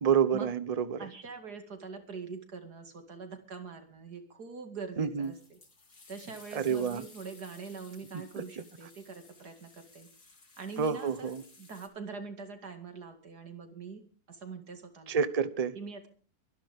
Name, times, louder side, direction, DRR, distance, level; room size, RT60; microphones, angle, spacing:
voice 1, 0.0-1.0 5.0-5.3 6.5-7.0 10.8-11.4 15.1-15.8, right 7 dB, 30° right, 14 dB, 0.8 m, -28 dB
voice 2, 1.0-5.6 6.1-10.1 10.6-14.0 14.3-15.2 15.7-16.1, right 4 dB, 85° right, 6 dB, 2.9 m, -44 dB
sound 1, 5.2-11.9, left 3 dB, 75° left, 3.7 m, -57 dB
24.0 x 11.0 x 3.6 m, 0.40 s
omnidirectional pair, 1.7 m